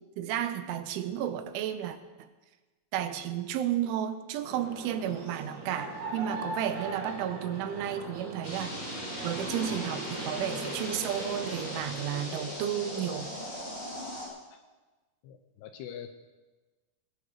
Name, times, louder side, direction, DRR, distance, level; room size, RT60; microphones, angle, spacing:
voice 1, 0.2-2.3 2.9-8.7 9.2-13.3, right 10 dB, 80° right, 10 dB, 3.3 m, -32 dB
sound 1, 4.4-11.8, right 2 dB, 60° right, 4.3 m, -40 dB
sound 2, 8.4-14.3, left 1 dB, 25° left, 6.0 m, -39 dB
voice 2, 15.2-16.1, left 9 dB, 80° left, 7 dB, 2.4 m, -43 dB
20.0 x 10.5 x 6.5 m, 1.2 s
omnidirectional pair, 5.6 m